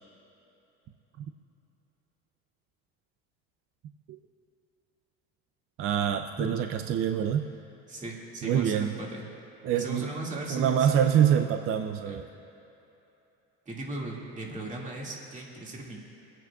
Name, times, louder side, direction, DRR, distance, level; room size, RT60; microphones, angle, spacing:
voice 1, 5.8-7.5 8.4-9.0 9.6-10.1 10.5-12.3, right 9 dB, 45° right, 7 dB, 0.5 m, -25 dB
voice 2, 7.9-9.3 9.7-11.4 12.0-12.2 13.7-16.0, right 2 dB, 25° right, -2 dB, 2.1 m, -37 dB
26.0 x 9.0 x 2.4 m, 2.9 s
supercardioid pair, 105°, 31 cm